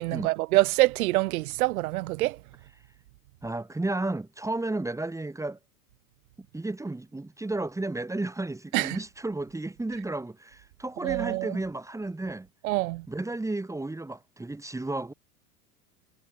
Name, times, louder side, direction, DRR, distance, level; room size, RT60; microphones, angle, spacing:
voice 1, 0.0-2.4 8.7-9.0 11.0-11.6 12.6-13.0, right 19 dB, 65° right, 3.2 m, -25 dB
voice 2, 3.4-5.6 6.5-12.5 13.1-15.1, right 2 dB, 5° right, 4.8 m, -33 dB
supercardioid pair, 125°, 46 cm